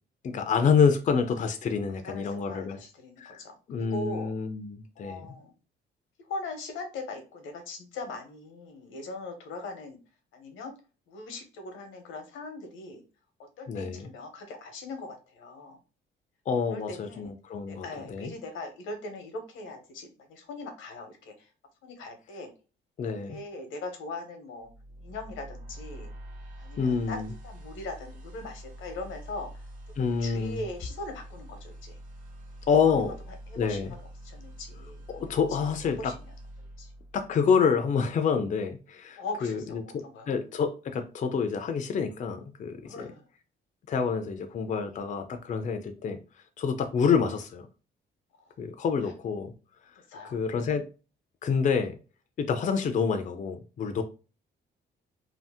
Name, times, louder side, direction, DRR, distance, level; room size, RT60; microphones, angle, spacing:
voice 1, 0.2-2.8 3.2-3.4 3.7-5.3 13.7-14.1 16.5-18.3 23.0-23.4 26.8-27.3 30.0-30.6 32.7-33.1 33.6-33.9 35.1-36.1 37.1-43.1 43.9-46.2 46.6-47.7 48.6-49.5 50.2-50.8 51.4-52.0 52.4-54.0, left 6 dB, 40° left, 0.4 m, -27 dB
voice 2, 1.9-4.3 5.0-5.5 6.2-10.0 10.3-10.7 11.1-13.0 13.4-15.8 16.7-17.3 17.7-21.5 21.8-22.5 23.3-24.7 25.0-26.1 26.6-27.2 27.4-29.6 30.0-32.0 32.8-33.0 33.5-34.0 34.2-35.0 36.0-36.1 36.8-36.9 39.2-40.3 42.8-43.3 48.4-48.5 49.0-49.1 50.1-50.4, left 2 dB, 85° left, 0.9 m, -40 dB
sound 1, 24.6-37.7, right 1 dB, 40° right, 1.1 m, -45 dB
2.7 x 2.0 x 3.4 m
cardioid pair, 90°, 20 cm